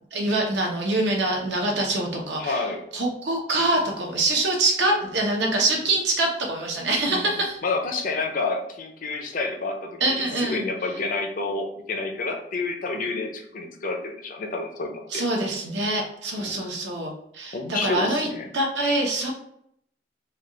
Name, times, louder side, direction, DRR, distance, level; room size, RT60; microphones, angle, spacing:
voice 1, 0.1-2.6 2.9-7.6 10.0-10.6 15.1-18.3 18.5-19.3, right 2 dB, 75° right, 0 dB, 0.9 m, -24 dB
voice 2, 2.4-2.8 7.1-7.3 7.6-15.2 16.4-16.6 17.5-18.5, left 3 dB, 50° left, 3 dB, 0.6 m, -29 dB
3.4 x 2.4 x 3.8 m, 0.71 s
head